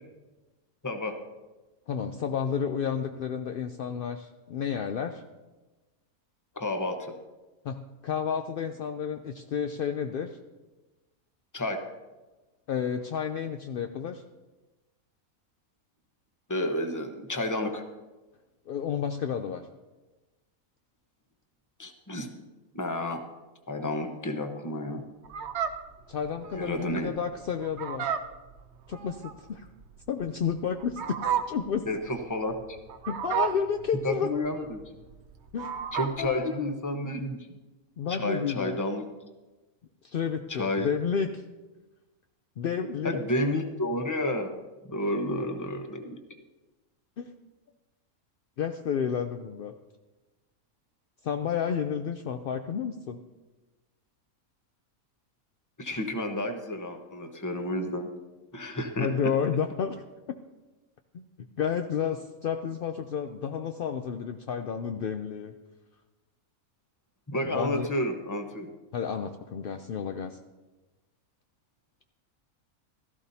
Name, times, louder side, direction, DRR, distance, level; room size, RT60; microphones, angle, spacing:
voice 1, 0.8-1.2 6.6-7.1 11.5-11.8 16.5-17.8 21.8-22.3 22.7-23.2 23.7-25.0 26.5-27.1 31.9-32.8 34.0-34.8 35.9-37.4 38.1-39.1 40.5-40.9 43.0-44.5 44.9-46.2 55.8-58.1 58.5-59.1 67.3-68.7, left 1 dB, 15° left, 5 dB, 0.8 m, -31 dB
voice 2, 1.9-5.2 7.6-10.4 12.7-14.2 18.7-19.7 26.1-28.1 28.9-29.7 30.1-31.2 31.5-31.9 33.1-34.3 35.5-35.8 36.2-36.5 38.0-38.8 40.0-41.4 42.6-43.2 47.2-47.3 48.6-49.7 51.2-53.2 59.0-60.4 61.1-61.2 61.6-65.5 67.5-67.9 68.9-70.4, left 7 dB, 65° left, 6 dB, 0.5 m, -31 dB
Fowl, 25.2-36.3, right 9 dB, 60° right, 0.9 m, -34 dB
16.0 x 13.5 x 2.7 m, 1.2 s
omnidirectional pair, 1.5 m